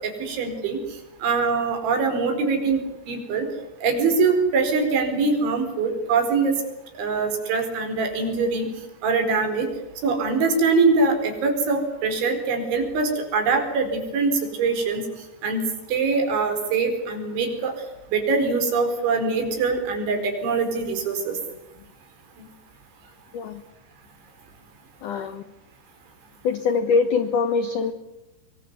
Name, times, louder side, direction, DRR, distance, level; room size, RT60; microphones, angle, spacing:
voice 1, 0.2-0.8 1.2-3.5 3.8-6.6 7.0-8.7 9.0-9.7 10.0-15.0 15.4-15.6 15.9-17.7 18.1-21.4, right 4 dB, 75° right, 5 dB, 6.9 m, -23 dB
voice 2, 25.0-25.4 26.4-27.9, left 5 dB, 80° left, 11 dB, 1.8 m, -23 dB
25.0 x 23.0 x 9.5 m, 0.89 s
omnidirectional pair, 5.3 m